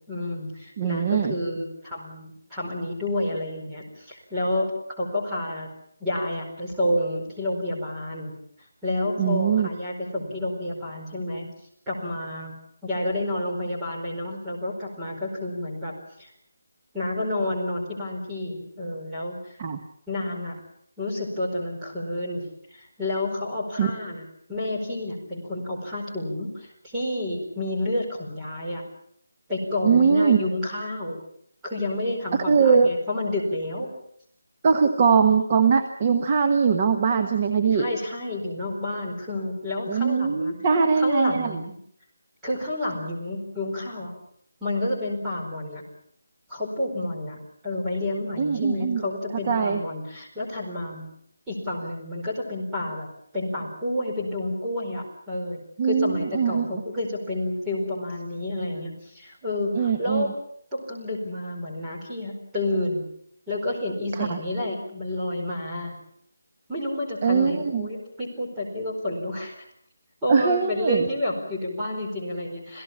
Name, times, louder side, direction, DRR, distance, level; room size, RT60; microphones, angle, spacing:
voice 1, 0.1-5.7 6.0-8.3 8.8-11.5 11.9-12.5 12.8-15.9 16.2-16.3 16.9-19.5 20.1-20.6 21.0-24.2 24.5-28.8 29.5-31.2 31.6-33.9 37.7-40.7 40.9-41.8 42.4-44.2 44.6-45.8 46.5-51.1 51.5-53.1 53.3-60.3 60.7-63.1 63.5-65.9 66.7-69.6 70.2-72.8, left 1 dB, 5° right, -6 dB, 4.7 m, -30 dB
voice 2, 0.8-1.3 9.2-9.7 19.6-19.8 23.8-23.9 29.8-30.4 32.5-32.9 34.6-37.9 39.9-41.6 48.4-49.0 49.5-49.8 55.8-56.7 59.7-60.3 64.2-64.4 67.2-67.9 70.3-71.0, right 5 dB, 25° right, 6 dB, 1.2 m, -21 dB
28.0 x 17.0 x 7.3 m, 0.67 s
figure-of-eight pair, 175°, 0 cm